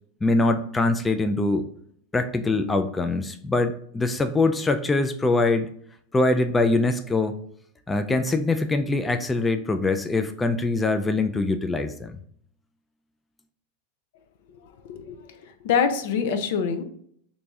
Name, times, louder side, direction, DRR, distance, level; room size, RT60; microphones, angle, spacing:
voice 1, 0.2-1.6 2.1-5.7 6.1-7.4 7.9-12.2, left 2 dB, 15° left, 7 dB, 0.3 m, -23 dB
voice 2, 14.8-16.8, left 6 dB, 70° left, 8 dB, 0.5 m, -25 dB
2.9 x 2.6 x 3.4 m, 0.63 s
hypercardioid pair, 115°, 0 cm